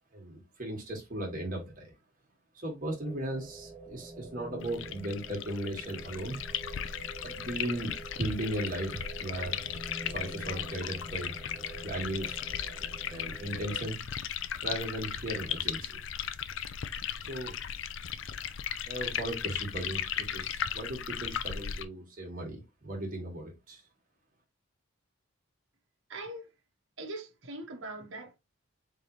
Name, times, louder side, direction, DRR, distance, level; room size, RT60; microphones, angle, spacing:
voice 1, 0.1-1.9 2.5-6.4 7.2-9.6 10.1-11.3 11.8-12.4 13.1-14.0 14.6-16.0 17.2-17.5 18.9-23.8, right 1 dB, 40° right, 1.8 m, -37 dB
sound 1, 3.0-14.0, right 2 dB, ahead, 1.1 m, -47 dB
sound 2, 4.6-21.9, left 9 dB, 60° left, 0.4 m, -37 dB
voice 2, 26.1-26.5 27.0-28.4, right 2 dB, 60° right, 1.1 m, -41 dB
4.1 x 3.7 x 3.1 m
head